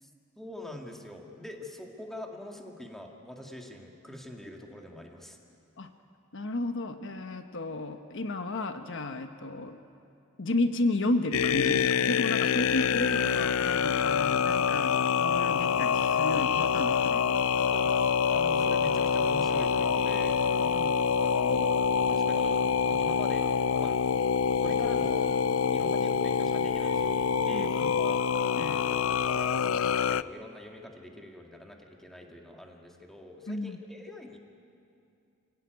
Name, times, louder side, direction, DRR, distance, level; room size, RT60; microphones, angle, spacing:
voice 1, 0.4-5.4 17.7-17.9 18.3-20.4 21.2-21.8 22.1-23.5 23.7-24.0 24.6-25.3 25.7-28.2 28.5-34.4, left 1 dB, ahead, 1 dB, 2.3 m, -44 dB
voice 2, 6.3-9.8 10.4-17.3 20.6-21.0 27.5-28.0 28.5-28.8 33.5-33.8, left 2 dB, 65° left, 7 dB, 1.1 m, -33 dB
sound 1, 11.3-30.2, left 6 dB, 80° left, 0.5 m, -26 dB
27.5 x 17.0 x 9.4 m, 2.5 s
head